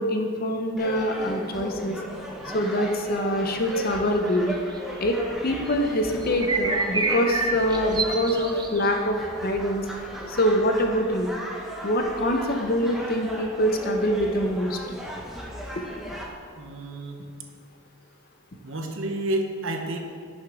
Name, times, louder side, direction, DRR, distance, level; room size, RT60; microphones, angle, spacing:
voice 1, 0.0-2.0 2.5-4.6 5.0-9.2 9.4-9.8 10.3-11.3 11.8-14.8, equal, 40° left, 4 dB, 0.7 m, -24 dB
sound 1, 0.8-16.3, equal, ahead, 0.8 m, -37 dB
sound 2, 6.2-8.9, right 3 dB, 20° right, 0.4 m, -27 dB
voice 2, 16.5-17.3 18.6-20.0, right 1 dB, 60° right, 3 dB, 0.9 m, -30 dB
11.0 x 6.4 x 3.6 m, 2.2 s
head